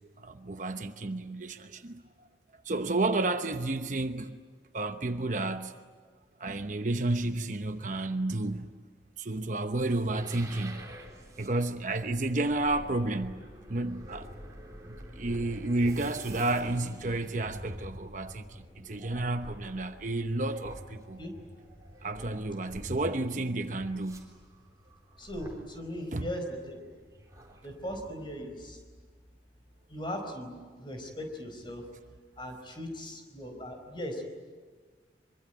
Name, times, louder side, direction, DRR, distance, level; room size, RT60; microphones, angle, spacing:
voice 1, 0.2-2.0 2.6-4.4 4.7-5.8 6.4-8.7 9.2-10.9 11.4-14.3 14.9-21.2 22.0-24.3 26.1-26.3, right 2 dB, 45° right, 1.0 m, -31 dB
sound 1, 9.7-28.5, equal, 20° right, 3.6 m, -47 dB
voice 2, 25.2-26.8 27.6-28.8 29.9-31.8 32.4-34.2, equal, 25° left, 4.8 m, -38 dB
25.0 x 24.0 x 9.3 m
head